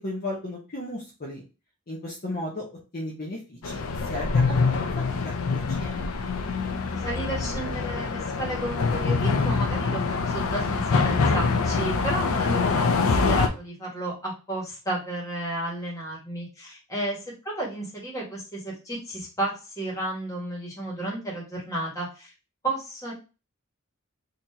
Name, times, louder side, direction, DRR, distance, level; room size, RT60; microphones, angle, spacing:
voice 1, 0.0-1.4 1.9-2.6 2.9-3.8 4.0-4.8 5.2-6.0, left 1 dB, 45° left, -3 dB, 0.9 m, -35 dB
sound 1, 3.6-13.5, left 4 dB, 80° left, 0.6 m, -25 dB
voice 2, 7.0-22.3 22.6-23.1, right 1 dB, 15° left, -4 dB, 1.6 m, -32 dB
3.9 x 2.9 x 2.7 m, 0.31 s
head